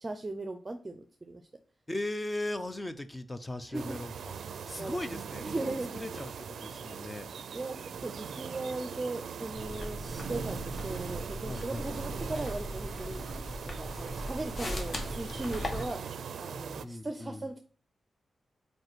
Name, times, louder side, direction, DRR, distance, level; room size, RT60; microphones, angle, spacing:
voice 1, 0.0-1.4 3.7-4.0 4.8-5.0 5.4-5.9 7.5-13.2 13.6-16.0 16.4-17.6, right 2 dB, 25° right, 6 dB, 0.7 m, -38 dB
voice 2, 1.9-4.4 4.7-5.5 5.9-6.3 6.6-7.3 11.5-11.8 16.8-17.4, left 1 dB, 15° left, 11 dB, 0.7 m, -37 dB
sound 1, 3.7-16.9, right 6 dB, 80° right, 0.4 m, -41 dB
sound 2, 9.5-15.9, equal, 45° left, 1.6 m, -39 dB
5.3 x 4.6 x 6.1 m, 0.41 s
wide cardioid pair, 120°, 0 cm